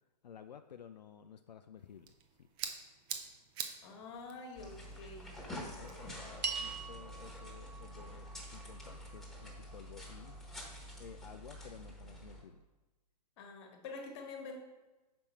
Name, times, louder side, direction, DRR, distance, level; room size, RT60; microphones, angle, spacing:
voice 1, 0.2-2.1 2.4-2.5 5.5-10.4 11.0-12.6, left 8 dB, 85° left, 8 dB, 0.4 m, -53 dB
sound 1, 1.8-6.8, right 8 dB, 20° right, 0.5 m, -47 dB
voice 2, 3.8-5.3 5.8-6.2 13.4-14.6, left 3 dB, 40° left, 3 dB, 1.4 m, -47 dB
sound 2, 4.6-12.4, equal, ahead, 1.2 m, -48 dB
sound 3, 6.4-10.9, right 5 dB, 85° right, 1.0 m, -45 dB
5.7 x 5.2 x 4.4 m, 1.1 s
hypercardioid pair, 135°, 21 cm